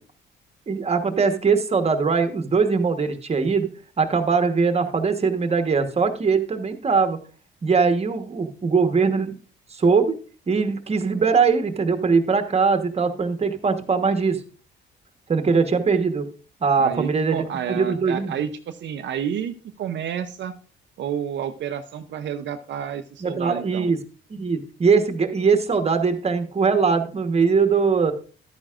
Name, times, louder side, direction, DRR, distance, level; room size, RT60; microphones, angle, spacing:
voice 1, 0.7-3.7 4.0-7.2 7.6-9.4 9.7-10.2 10.5-14.4 15.3-16.3 16.6-18.4 23.2-24.0 24.3-28.1, right 5 dB, 30° right, 7 dB, 1.2 m, -21 dB
voice 2, 16.8-20.6 21.0-23.9, right 8 dB, 65° right, 7 dB, 0.6 m, -30 dB
12.0 x 9.0 x 2.5 m, 0.38 s
cardioid pair, 90°, 20 cm